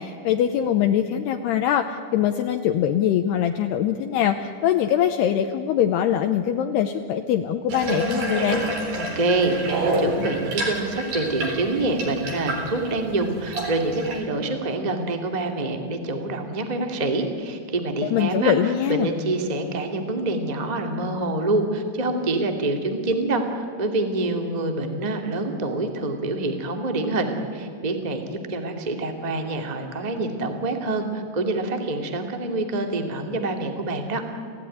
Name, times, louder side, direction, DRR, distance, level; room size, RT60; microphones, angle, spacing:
voice 1, 0.0-8.6 18.0-19.1, left 10 dB, 75° left, 6 dB, 2.6 m, -23 dB
Water tap faucet / Bathtub (filling or washing), 7.7-14.2, right 1 dB, 60° right, 5.8 m, -28 dB
voice 2, 8.9-34.2, right 2 dB, 30° right, 4 dB, 0.7 m, -26 dB
29.5 x 16.0 x 9.9 m, 2.4 s
omnidirectional pair, 5.3 m